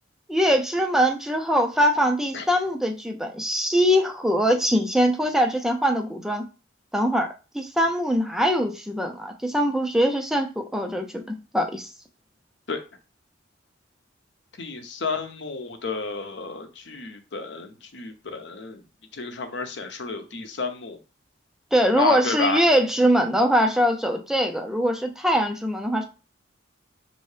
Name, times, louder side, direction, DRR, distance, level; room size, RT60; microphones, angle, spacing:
voice 1, 0.3-6.4 6.9-11.9 21.7-26.0, equal, ahead, 3 dB, 0.4 m, -22 dB
voice 2, 14.6-18.8 19.1-21.0 22.0-22.6, left 4 dB, 65° left, 7 dB, 0.7 m, -31 dB
5.3 x 2.7 x 3.2 m, 0.32 s
head